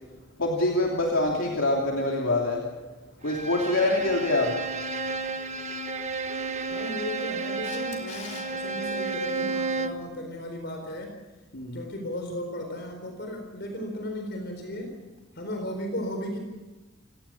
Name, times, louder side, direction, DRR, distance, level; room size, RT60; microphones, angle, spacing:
voice 1, 0.4-2.6 3.2-4.5 11.5-11.8, left 2 dB, 70° left, -1 dB, 3.1 m, -25 dB
Bowed string instrument, 3.3-10.1, right 3 dB, 35° right, 1.2 m, -32 dB
voice 2, 6.7-11.1 11.7-15.0 15.3-16.4, left 1 dB, 55° left, 3 dB, 4.2 m, -35 dB
Camera, 7.6-8.5 15.2-15.3, left 4 dB, 35° left, 3.9 m, -42 dB
28.0 x 17.0 x 7.3 m, 1.2 s
head